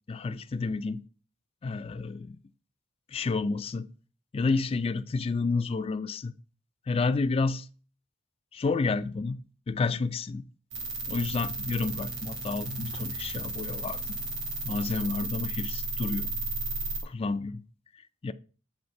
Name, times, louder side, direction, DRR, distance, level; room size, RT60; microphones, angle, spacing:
voice 1, 0.1-1.0 1.6-2.4 3.1-3.9 4.3-6.3 6.9-7.7 8.5-9.4 9.7-10.4 11.1-14.0 14.7-16.3 17.0-17.6 18.2-18.3, left 4 dB, 30° left, 0.3 m, -30 dB
sound 1, 10.7-17.0, right 3 dB, 60° right, 1.5 m, -34 dB
7.1 x 3.4 x 5.3 m
head